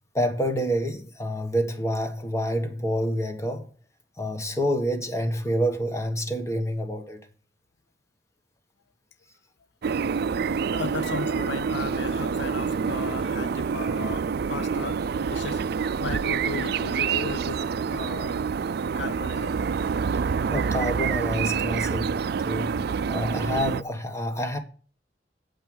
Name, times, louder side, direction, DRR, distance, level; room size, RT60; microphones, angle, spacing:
voice 1, 0.1-3.7 4.2-7.2 20.5-22.2 22.4-24.6, equal, 15° left, 1.4 m, -28 dB
sound 1, 9.8-23.8, right 6 dB, 60° right, 0.4 m, -27 dB
voice 2, 10.7-15.6 16.0-17.6 17.9-18.4 18.9-19.5, left 5 dB, 75° left, 0.6 m, -36 dB
8.4 x 5.6 x 6.2 m
head